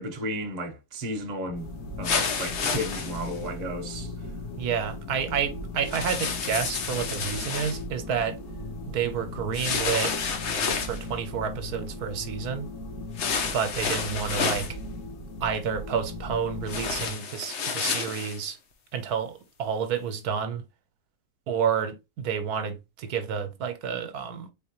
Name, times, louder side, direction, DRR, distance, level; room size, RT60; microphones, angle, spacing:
voice 1, 0.0-1.7 2.0-4.1, equal, 30° right, 0.9 m, -33 dB
sound 1, 1.4-17.1, left 2 dB, 75° left, 1.6 m, -38 dB
sound 2, 2.0-3.4 5.8-7.8 9.5-11.0 13.2-14.7 16.7-18.4, left 5 dB, 55° left, 1.0 m, -30 dB
voice 2, 4.6-8.4 8.9-10.1 10.8-12.7 13.5-14.7 15.4-18.6 18.9-20.6 21.5-24.5, right 7 dB, 80° right, 1.2 m, -29 dB
4.1 x 3.7 x 2.9 m
omnidirectional pair, 1.7 m